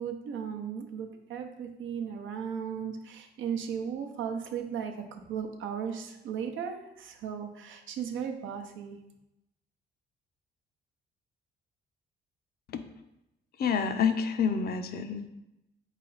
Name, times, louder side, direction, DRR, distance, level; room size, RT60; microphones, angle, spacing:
voice 1, 0.0-9.0, right 7 dB, 75° right, 4 dB, 0.6 m, -36 dB
voice 2, 13.6-15.3, left 6 dB, 50° left, 8 dB, 0.5 m, -28 dB
4.2 x 3.2 x 3.9 m, 0.90 s
cardioid pair, 90°, 20 cm